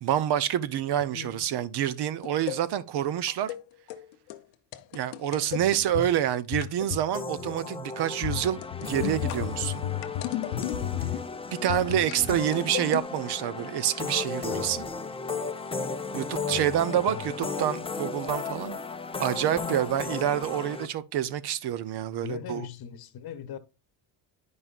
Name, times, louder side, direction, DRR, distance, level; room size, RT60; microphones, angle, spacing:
voice 1, 0.0-3.5 4.9-9.8 11.6-14.8 16.1-18.8 19.2-22.7, right 11 dB, 60° right, 0.7 m, -27 dB
voice 2, 1.1-1.4 5.6-5.9 11.9-12.3 14.5-14.9 16.5-17.3 22.2-23.6, left 8 dB, 55° left, 1.0 m, -40 dB
sound 1, 2.2-2.6 3.3-3.6 3.9-4.4 4.7-6.1 6.5-7.1 7.4-7.6 8.2-11.3 11.7-13.0, left 12 dB, 90° left, 0.7 m, -33 dB
sound 2, 7.1-20.9, left 4 dB, 15° left, 0.5 m, -35 dB
9.4 x 5.4 x 2.4 m
supercardioid pair, 75°, 44 cm